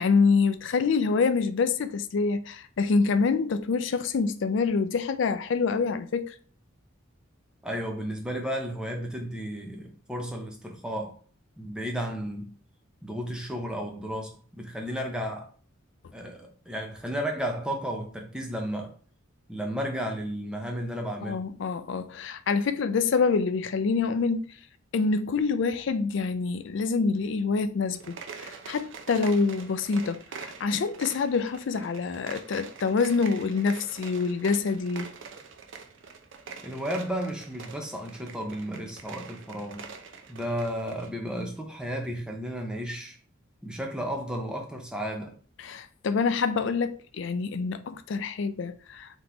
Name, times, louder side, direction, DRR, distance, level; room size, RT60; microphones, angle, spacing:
voice 1, 0.0-6.4 21.2-24.5 24.9-35.1 45.6-49.1, left 4 dB, 60° left, 0.4 m, -26 dB
voice 2, 7.6-11.2 11.6-12.5 13.0-15.5 16.1-18.9 19.5-21.4 36.6-39.9 40.3-43.2 43.6-45.4, equal, 5° right, 0.6 m, -33 dB
sound 1, 27.9-41.1, right 5 dB, 65° right, 0.5 m, -44 dB
3.7 x 3.0 x 3.8 m
head